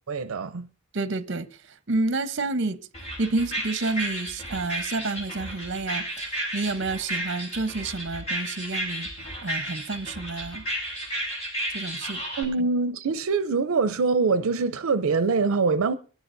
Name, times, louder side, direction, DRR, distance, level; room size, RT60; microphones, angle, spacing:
voice 1, 0.1-0.7 12.4-15.9, right 4 dB, 85° right, 0.5 m, -24 dB
voice 2, 0.9-1.5 1.9-2.8 3.2-9.1 9.4-10.6 11.7-12.2, right 3 dB, 60° right, 0.8 m, -29 dB
sound 1, 2.9-12.4, right 1 dB, 35° left, 4.6 m, -33 dB
22.5 x 12.5 x 2.6 m
head